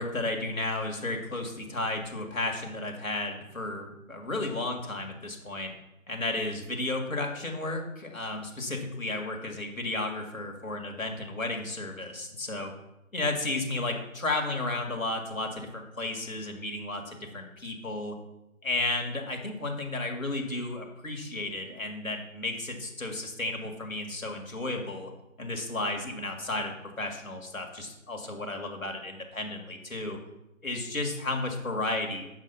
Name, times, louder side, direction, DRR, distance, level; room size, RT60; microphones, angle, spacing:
voice 1, 0.0-5.7 6.1-12.7 13.1-18.2 18.6-25.1 25.4-30.2 30.6-32.2, left 2 dB, 70° left, 2 dB, 2.0 m, -33 dB
7.6 x 5.9 x 5.6 m, 0.93 s
figure-of-eight pair, 155°, 42 cm